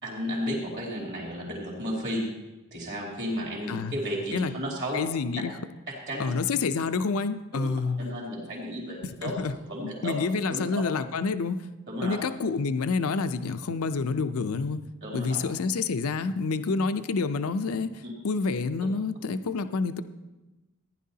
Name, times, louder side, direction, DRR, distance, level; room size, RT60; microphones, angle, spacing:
voice 1, 0.0-2.2 2.7-5.0 5.9-6.3 7.5-7.7 8.0-9.3 9.6-10.1 10.5-10.7 11.9-12.2 15.0-15.4 18.0-18.1, equal, 55° right, -3 dB, 3.1 m, -33 dB
voice 2, 4.9-5.5 6.2-8.0 9.0-9.5 9.8-11.6 12.0-14.8 15.1-17.9 18.2-20.0, left 4 dB, 75° left, 11 dB, 0.5 m, -28 dB
15.0 x 10.5 x 2.8 m, 1.1 s
head